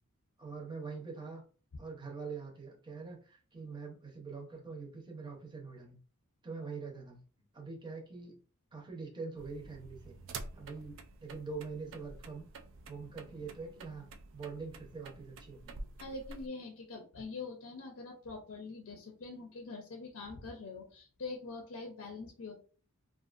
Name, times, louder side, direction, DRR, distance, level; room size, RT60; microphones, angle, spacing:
voice 1, 0.4-1.4 1.8-6.0 6.4-7.2 7.5-8.4 8.7-10.1 10.5-12.5 12.9-14.1 14.3-15.8, right 4 dB, 20° right, -1 dB, 0.7 m, -44 dB
sound 1, 9.4-16.5, right 3 dB, 60° right, 0.3 m, -49 dB
voice 2, 16.0-22.5, left 3 dB, 60° left, 1 dB, 0.6 m, -44 dB
2.5 x 2.4 x 2.4 m, 0.38 s
head